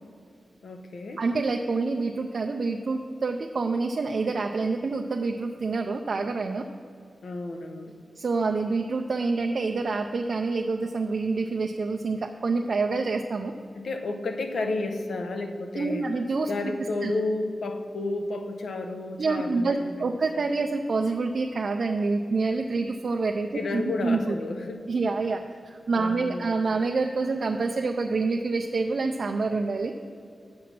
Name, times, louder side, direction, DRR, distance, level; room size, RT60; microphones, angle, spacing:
voice 1, 0.6-1.2 7.2-8.0 13.7-16.1 16.5-20.1 23.5-24.8 25.9-26.6, left 2 dB, 75° left, 5 dB, 0.8 m, -31 dB
voice 2, 1.2-6.7 8.2-13.5 15.8-16.5 17.0-17.1 19.2-24.4 24.9-29.9, right 3 dB, 60° right, 3 dB, 0.4 m, -27 dB
7.4 x 7.1 x 6.0 m, 2.4 s
wide cardioid pair, 105°, 0 cm